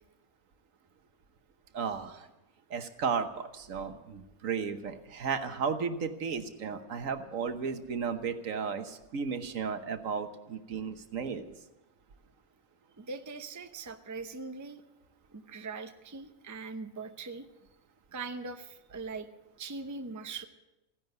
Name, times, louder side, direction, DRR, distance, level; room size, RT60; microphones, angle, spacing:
voice 1, 1.7-2.3 2.7-11.5, right 6 dB, 70° right, 9 dB, 1.4 m, -34 dB
voice 2, 13.0-14.8 15.3-17.5 18.1-19.3 19.6-20.4, right 4 dB, 15° right, 7 dB, 0.6 m, -41 dB
15.5 x 10.5 x 8.0 m, 0.98 s
omnidirectional pair, 1.5 m